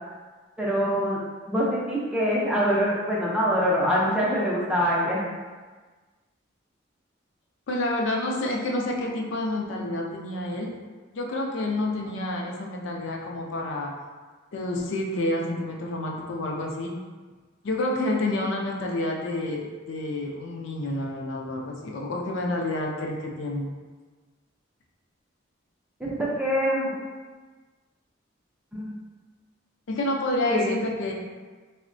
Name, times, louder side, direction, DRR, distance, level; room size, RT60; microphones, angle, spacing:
voice 1, 0.6-5.3 26.0-26.9 28.7-29.0 30.4-30.8, equal, 5° right, -6 dB, 0.4 m, -24 dB
voice 2, 7.7-10.7 11.1-13.9 14.5-16.9 17.6-23.7 29.9-31.1, left 1 dB, 65° left, 0 dB, 0.4 m, -29 dB
3.6 x 2.1 x 2.5 m, 1.4 s
head